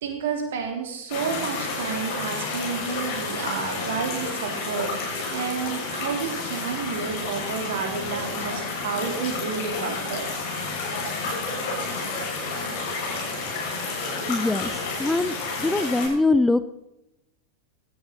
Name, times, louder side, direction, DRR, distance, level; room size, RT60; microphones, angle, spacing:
voice 1, 0.0-10.3, right 5 dB, 60° right, 3 dB, 3.6 m, -30 dB
sound 1, 1.1-16.1, left 3 dB, 50° left, 6.9 m, -30 dB
voice 2, 14.3-16.7, left 2 dB, 5° left, 13 dB, 0.6 m, -23 dB
17.0 x 13.5 x 4.2 m, 0.88 s
figure-of-eight pair, 90°, 0 cm